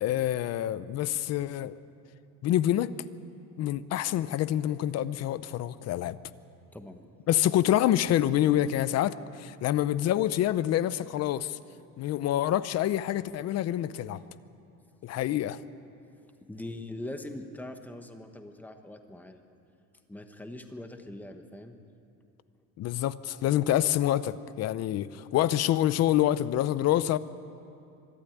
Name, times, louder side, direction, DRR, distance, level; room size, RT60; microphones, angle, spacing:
voice 1, 0.0-1.8 2.4-2.9 3.6-6.2 7.3-11.6 12.0-14.2 15.0-15.6 22.8-27.2, left 12 dB, 50° left, 16 dB, 0.6 m, -27 dB
voice 2, 6.7-7.1 16.5-19.4 20.1-21.8, left 1 dB, 5° left, 6 dB, 1.0 m, -42 dB
24.5 x 12.5 x 9.3 m, 2.6 s
cardioid pair, 165°, 33 cm